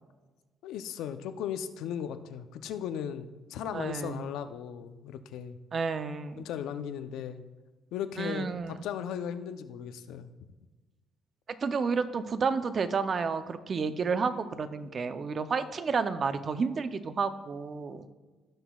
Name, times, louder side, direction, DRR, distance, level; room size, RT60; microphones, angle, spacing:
voice 1, 0.6-5.6 6.4-7.4 7.9-10.3, left 9 dB, 85° left, 10 dB, 0.5 m, -37 dB
voice 2, 3.7-4.3 5.7-6.5 8.2-8.8 11.6-18.1, right 5 dB, 35° right, 11 dB, 0.5 m, -31 dB
17.0 x 6.0 x 2.3 m, 1.2 s
cardioid pair, 140°, 0 cm